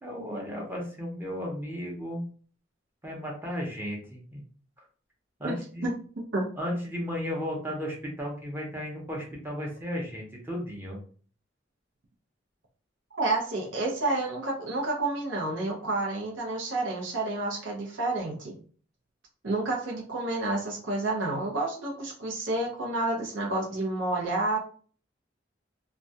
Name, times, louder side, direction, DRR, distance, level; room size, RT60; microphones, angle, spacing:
voice 1, 0.0-2.2 3.0-4.4 4.8-4.9 5.4-5.9 6.6-11.0, equal, 10° right, -2 dB, 0.6 m, -34 dB
voice 2, 5.4-5.9 6.3-6.4 13.1-18.6 19.4-24.6, right 2 dB, 85° right, -2 dB, 0.6 m, -30 dB
2.3 x 2.1 x 2.6 m, 0.43 s
head